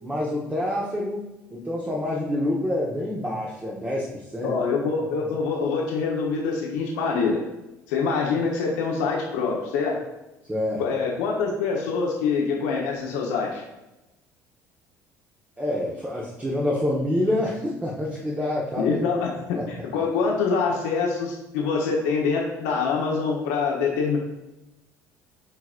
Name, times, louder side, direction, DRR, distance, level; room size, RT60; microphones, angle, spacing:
voice 1, 0.0-4.5 5.2-5.3 10.5-10.8 15.6-19.0 19.5-19.6, left 1 dB, 15° right, -4 dB, 1.4 m, -27 dB
voice 2, 4.4-7.4 7.9-10.0 10.8-13.6 18.8-24.2, left 5 dB, 75° left, -2 dB, 1.2 m, -25 dB
9.0 x 4.7 x 2.6 m, 0.98 s
hypercardioid pair, 60°, 9 cm